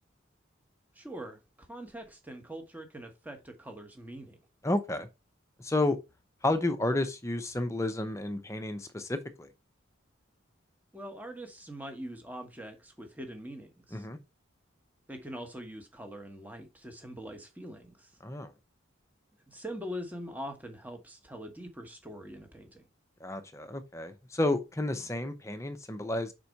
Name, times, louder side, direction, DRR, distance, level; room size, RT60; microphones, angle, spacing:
voice 1, 0.9-4.4 10.9-14.1 15.1-18.1 19.5-22.8, equal, 10° right, 1.1 m, -43 dB
voice 2, 4.6-5.1 5.6-6.0 6.4-9.5 13.9-14.2 18.2-18.5 23.2-26.3, left 2 dB, 15° left, 0.7 m, -31 dB
5.1 x 4.2 x 4.6 m
head